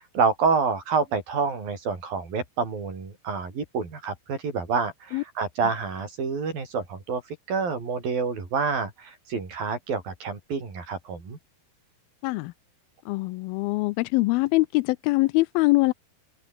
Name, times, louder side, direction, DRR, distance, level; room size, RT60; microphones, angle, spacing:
voice 1, 0.0-7.2 7.5-11.4, right 5 dB, 60° right, 7.9 m, -28 dB
voice 2, 13.1-15.9, left 22 dB, 80° left, 2.2 m, -23 dB
omnidirectional pair, 4.7 m